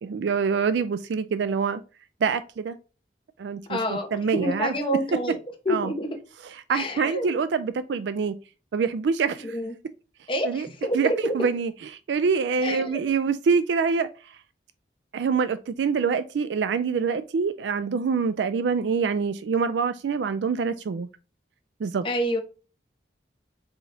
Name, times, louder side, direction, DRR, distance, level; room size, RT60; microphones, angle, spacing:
voice 1, 0.0-1.8 2.2-2.8 3.4-4.7 5.7-5.9 6.4-8.3 8.7-9.6 10.4-10.7 10.9-14.4 15.1-21.1 21.8-22.0, right 5 dB, 75° right, 0.3 m, -25 dB
voice 2, 3.7-5.4 5.6-6.2 6.7-7.3 9.4-9.7 10.3-11.3 12.6-13.0 22.0-22.4, equal, 30° left, 1.0 m, -28 dB
4.9 x 3.8 x 2.7 m
head